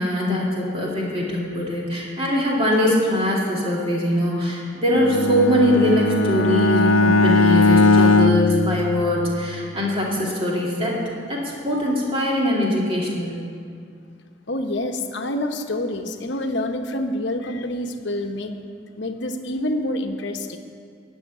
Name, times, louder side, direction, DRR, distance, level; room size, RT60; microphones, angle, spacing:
voice 1, 0.0-11.0 11.3-13.4, left 1 dB, 30° right, -4 dB, 2.7 m, -22 dB
Bowed string instrument, 4.9-9.5, left 2 dB, 90° left, 0.5 m, -18 dB
voice 2, 14.5-18.7 19.0-20.6, left 1 dB, 60° left, 4 dB, 1.0 m, -27 dB
15.5 x 6.5 x 9.6 m, 2.2 s
head